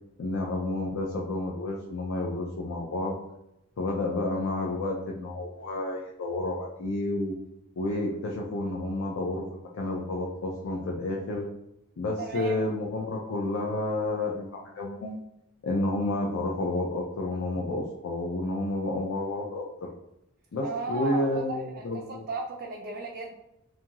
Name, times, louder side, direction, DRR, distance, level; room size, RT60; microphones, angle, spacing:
voice 1, 0.2-3.1 3.8-7.3 7.8-11.5 12.0-15.2 15.6-19.6 20.5-22.2, left 2 dB, 60° left, -1 dB, 0.4 m, -30 dB
voice 2, 12.2-12.6 20.6-23.3, right 3 dB, 45° right, -1 dB, 0.3 m, -35 dB
2.6 x 2.4 x 2.9 m, 0.85 s
head